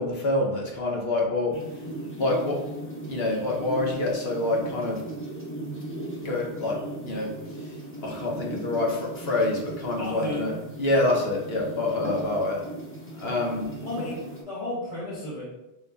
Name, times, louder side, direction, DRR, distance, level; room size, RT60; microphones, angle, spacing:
voice 1, 0.0-1.5 2.2-2.6 3.1-5.0 6.1-6.8 7.0-7.3 7.6-7.7 8.0-12.6 13.2-13.6, left 2 dB, 70° left, -1 dB, 1.2 m, -26 dB
sound 1, 1.5-14.4, right 1 dB, 15° left, 0.9 m, -37 dB
voice 2, 10.0-10.5 13.8-14.2 14.4-15.4, left 1 dB, 30° left, -11 dB, 1.2 m, -33 dB
4.0 x 2.9 x 3.4 m, 0.95 s
omnidirectional pair, 1.1 m